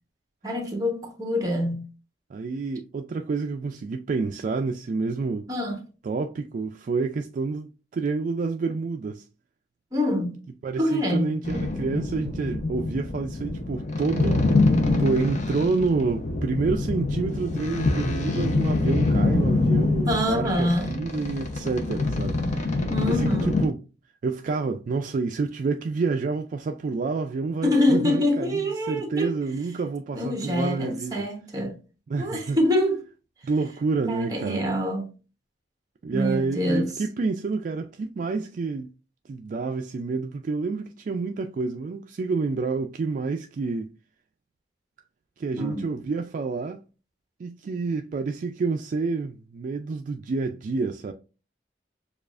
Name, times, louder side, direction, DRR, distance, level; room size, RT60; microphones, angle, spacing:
voice 1, 0.4-1.9 5.5-5.8 9.9-10.4 10.8-11.4 20.1-20.9 22.9-23.5 27.6-29.3 30.1-31.8 32.2-33.0 34.1-35.0 36.1-36.9 45.5-45.8, left 1 dB, 20° right, 1.0 m, -25 dB
voice 2, 2.3-5.5 6.0-9.3 10.6-14.5 15.0-23.8 24.2-28.6 28.9-31.3 32.1-32.6 33.4-34.7 36.0-38.9 39.3-43.9 45.4-46.8 47.4-51.1, right 4 dB, 45° right, 0.3 m, -28 dB
sound 1, 11.4-23.7, left 2 dB, 40° left, 0.6 m, -25 dB
6.8 x 2.4 x 2.4 m
head